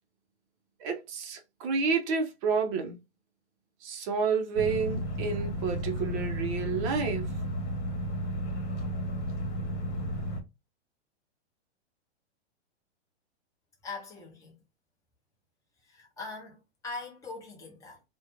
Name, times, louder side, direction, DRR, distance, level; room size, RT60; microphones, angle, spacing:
voice 1, 0.8-3.0 3.8-7.3, right 5 dB, 30° right, 0.5 m, -30 dB
sound 1, 4.6-10.4, equal, 75° left, 1.0 m, -33 dB
voice 2, 13.8-14.6 15.8-18.0, left 3 dB, 10° left, 0.7 m, -42 dB
2.3 x 2.2 x 2.9 m
hypercardioid pair, 135°, 34 cm